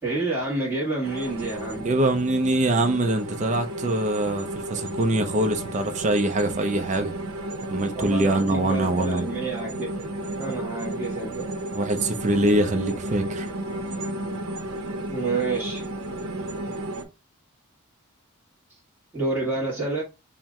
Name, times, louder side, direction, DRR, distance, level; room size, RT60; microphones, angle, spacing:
voice 1, 0.0-1.9 7.9-10.0 10.3-11.6 15.1-15.9 19.1-20.0, right 2 dB, 10° right, 1.2 m, -29 dB
sound 1, 1.0-17.0, right 1 dB, 80° right, 0.7 m, -33 dB
voice 2, 1.8-7.1 7.7-9.3 11.7-13.5, right 2 dB, 35° right, 0.5 m, -24 dB
4.4 x 2.1 x 3.5 m
head